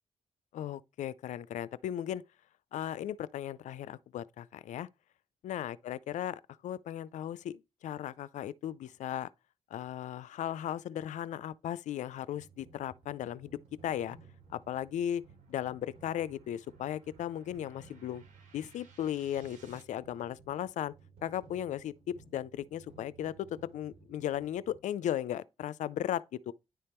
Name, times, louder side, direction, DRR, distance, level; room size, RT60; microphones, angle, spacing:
voice 1, 0.5-2.2 2.7-4.9 5.4-9.3 9.7-13.5 13.8-14.2 14.5-15.2 15.5-18.2 18.5-20.9 21.2-26.5, left 11 dB, 75° left, 0.4 m, -36 dB
sound 1, 12.3-24.7, right 4 dB, 60° right, 4.2 m, -58 dB
sound 2, 13.2-19.8, right 5 dB, 85° right, 1.9 m, -65 dB
10.0 x 3.5 x 4.3 m
cardioid pair, 90°, 13 cm